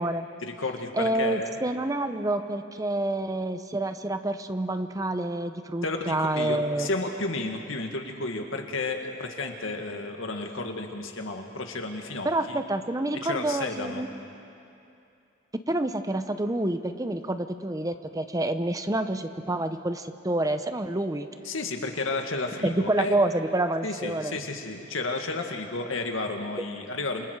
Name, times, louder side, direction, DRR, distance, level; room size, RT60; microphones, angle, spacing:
voice 1, 0.4-1.5 5.8-12.6 13.1-14.1 21.4-23.2 23.8-27.3, left 3 dB, 85° left, 3 dB, 2.1 m, -32 dB
voice 2, 1.0-6.9 12.2-14.1 15.7-21.3 22.6-24.3, right 1 dB, 20° right, 9 dB, 0.7 m, -28 dB
28.5 x 26.0 x 4.7 m, 2.7 s
head